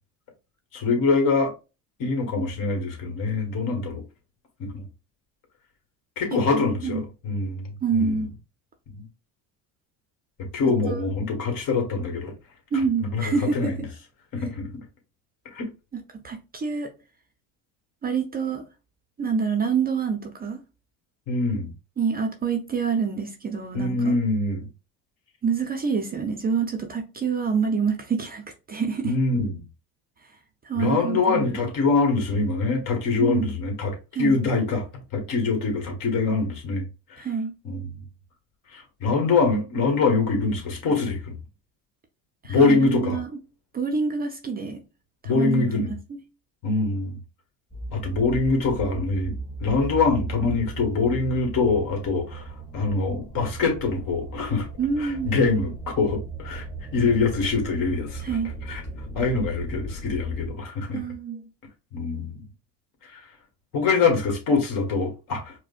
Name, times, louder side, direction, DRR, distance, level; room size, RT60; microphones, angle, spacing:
voice 1, 0.7-1.5 2.0-4.0 4.6-4.8 6.2-7.7 7.9-8.2 8.9-9.0 10.5-12.3 13.0-13.7 14.3-14.8 15.5-15.7 21.3-21.7 23.7-24.6 29.0-29.6 30.8-34.8 35.1-36.8 37.6-37.9 38.7-41.3 42.5-43.2 45.2-45.9 46.6-47.2 47.9-52.4 52.7-54.7 55.0-56.6 56.9-58.2 58.7-58.8 59.1-61.0 61.9-62.3 63.7-65.5, left 4 dB, 55° left, 1.5 m, -24 dB
voice 2, 6.3-7.0 7.8-8.3 10.9-11.0 12.7-13.9 16.2-16.9 18.0-18.6 19.2-20.6 22.0-24.2 25.4-29.1 30.6-31.7 33.2-33.6 34.1-34.4 37.2-37.5 42.4-43.3 43.7-44.8 45.2-46.2 54.8-55.3 58.2-58.5 60.9-61.5, right 5 dB, 25° right, 0.5 m, -27 dB
sound 1, 47.7-60.5, right 3 dB, 15° left, 1.2 m, -37 dB
4.8 x 2.1 x 2.4 m
supercardioid pair, 115°, 40 cm